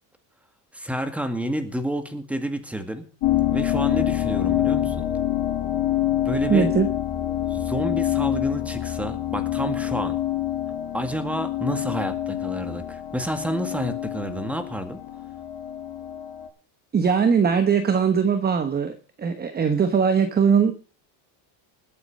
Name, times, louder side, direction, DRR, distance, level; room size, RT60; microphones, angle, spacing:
voice 1, 0.7-3.1 3.5-5.1 6.2-6.7 7.5-10.2 10.9-15.0, right 1 dB, 5° right, 8 dB, 1.9 m, -29 dB
sound 1, 3.2-16.5, left 13 dB, 55° left, 7.4 m, -26 dB
voice 2, 6.5-6.9 16.9-20.7, right 6 dB, 20° right, 9 dB, 1.1 m, -20 dB
20.0 x 8.4 x 5.3 m, 0.40 s
cardioid pair, 140°, 48 cm